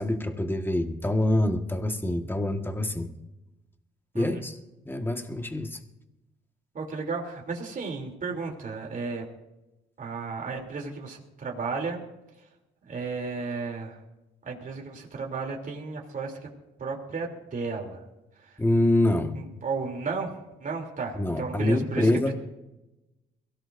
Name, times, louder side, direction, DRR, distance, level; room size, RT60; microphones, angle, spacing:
voice 1, 0.0-3.1 4.1-4.6 4.8-5.8 18.6-19.4 21.1-22.3, left 1 dB, 10° left, 5 dB, 1.7 m, -25 dB
voice 2, 6.7-9.2 10.0-12.0 12.9-14.0 14.4-16.5 16.8-18.0 18.4-18.6 19.3-22.3, right 4 dB, 40° right, 0 dB, 3.3 m, -34 dB
23.0 x 17.5 x 2.7 m, 0.98 s
cardioid pair, 90°, 20 cm